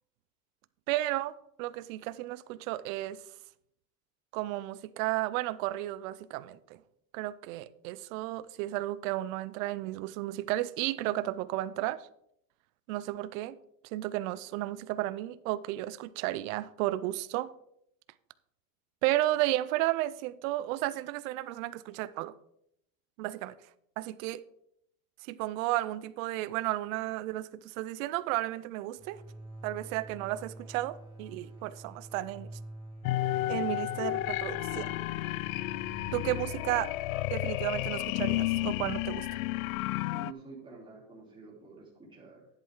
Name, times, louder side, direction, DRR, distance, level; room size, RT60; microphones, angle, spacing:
voice 1, 0.9-3.2 4.3-6.8 7.1-12.1 12.9-13.6 13.8-17.5 19.0-22.4 23.2-23.6 24.0-24.4 25.2-29.2 29.6-32.5 33.5-35.0 36.1-36.9 37.3-39.3, right 16 dB, 75° right, 0.6 m, -33 dB
sound 1, 28.9-38.4, right 2 dB, 10° left, 3.5 m, -48 dB
sound 2, 33.0-40.3, left 16 dB, 80° left, 0.5 m, -32 dB
voice 2, 40.1-42.5, right 3 dB, 10° right, 3.2 m, -48 dB
11.0 x 8.1 x 3.8 m
supercardioid pair, 140°, 41 cm